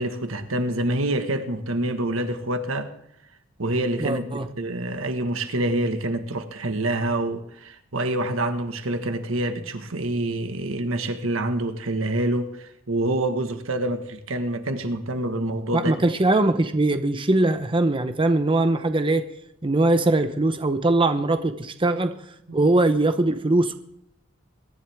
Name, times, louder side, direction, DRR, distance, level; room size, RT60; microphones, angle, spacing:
voice 1, 0.0-2.9 3.6-16.0 22.5-22.7, right 1 dB, 85° right, 1.5 m, -26 dB
voice 2, 4.0-4.5 15.7-19.2 19.6-22.2 22.5-23.7, right 2 dB, 25° right, 0.8 m, -21 dB
23.0 x 11.0 x 3.5 m
head